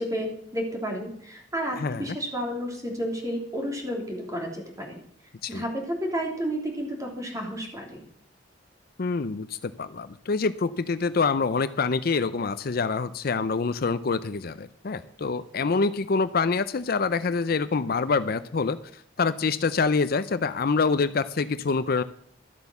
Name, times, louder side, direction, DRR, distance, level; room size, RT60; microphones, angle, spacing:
voice 1, 0.0-5.0 5.5-8.0, equal, 20° right, 1 dB, 3.0 m, -31 dB
voice 2, 1.8-2.2 5.4-5.6 9.0-22.0, left 4 dB, 55° left, 13 dB, 0.5 m, -26 dB
12.5 x 7.9 x 7.2 m, 0.65 s
head